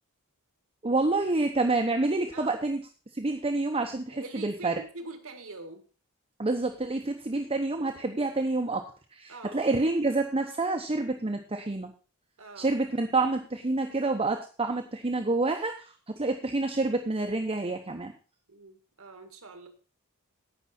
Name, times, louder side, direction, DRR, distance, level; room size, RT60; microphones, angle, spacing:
voice 1, 0.8-2.8 3.1-4.7 6.4-11.9 12.6-18.1, right 2 dB, 25° right, 4 dB, 0.9 m, -28 dB
voice 2, 4.1-5.8 9.3-9.6 12.4-12.7 18.5-19.7, right 3 dB, 65° right, 6 dB, 1.8 m, -44 dB
17.0 x 6.1 x 4.3 m, 0.38 s
head